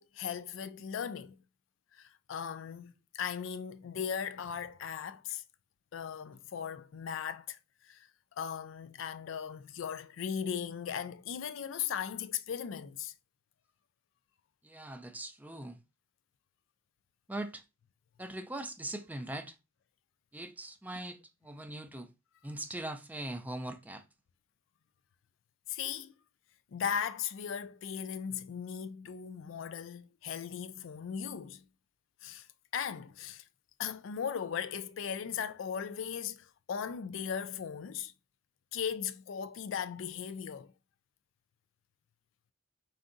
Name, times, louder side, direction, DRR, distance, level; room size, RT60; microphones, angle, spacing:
voice 1, 0.0-1.4 2.0-5.4 5.9-7.6 7.8-8.1 8.4-13.1 25.7-26.1 26.7-31.6 32.2-32.5 32.7-33.4 33.8-38.1 38.7-40.7, left 7 dB, 70° left, 0.4 m, -38 dB
voice 2, 14.6-15.8 17.3-17.6 18.2-19.6 20.3-22.1 22.4-24.0, right 1 dB, 10° right, 0.4 m, -41 dB
4.6 x 2.5 x 3.8 m
head